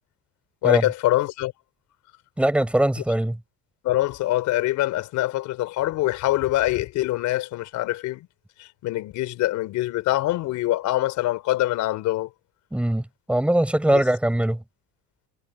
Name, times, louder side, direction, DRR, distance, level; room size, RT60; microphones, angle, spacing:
voice 1, 0.6-1.5 3.0-3.1 3.8-8.3 8.6-12.3 13.9-14.0, left 16 dB, 60° left, 4.1 m, -24 dB
voice 2, 2.4-3.4 12.7-14.6, right 1 dB, 5° right, 6.7 m, -21 dB
cardioid pair, 160°, 33 cm